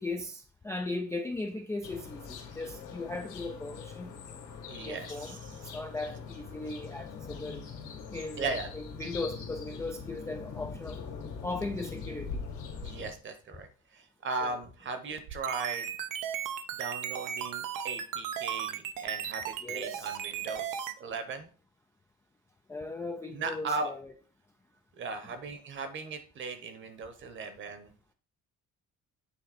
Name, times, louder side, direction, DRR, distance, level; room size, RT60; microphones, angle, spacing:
voice 1, 0.0-4.1 4.8-5.4 5.7-7.6 8.1-11.0 11.4-12.4 14.4-14.6 19.6-20.1 22.7-24.1, left 2 dB, 10° left, 0.3 m, -37 dB
sound 1, 1.8-13.1, left 5 dB, 70° left, 2.1 m, -42 dB
voice 2, 4.7-5.6 6.1-6.2 8.4-8.7 12.8-15.9 16.7-21.5 23.3-23.9 25.0-27.9, right 4 dB, 40° right, 1.0 m, -38 dB
sound 2, 15.2-20.9, right 9 dB, 85° right, 0.8 m, -36 dB
8.8 x 4.0 x 4.1 m
cardioid pair, 175°, 32 cm